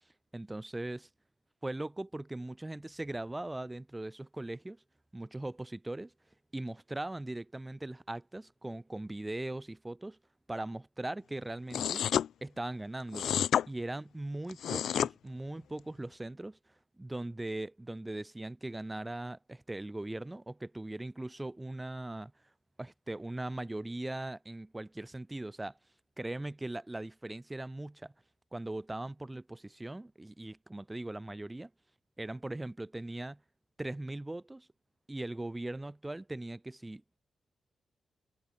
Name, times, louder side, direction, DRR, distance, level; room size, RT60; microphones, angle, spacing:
voice 1, 0.3-1.1 1.6-4.8 5.1-6.1 6.5-10.2 10.5-12.1 12.4-13.3 13.7-16.6 17.0-22.3 22.8-25.8 26.2-28.1 28.5-31.7 32.2-33.4 33.8-34.7 35.1-37.0, right 1 dB, 10° right, 2.0 m, -40 dB
sound 1, 11.7-12.3 13.1-13.7 14.5-15.1, left 9 dB, 90° left, 0.6 m, -29 dB
wide cardioid pair, 155°, 0 cm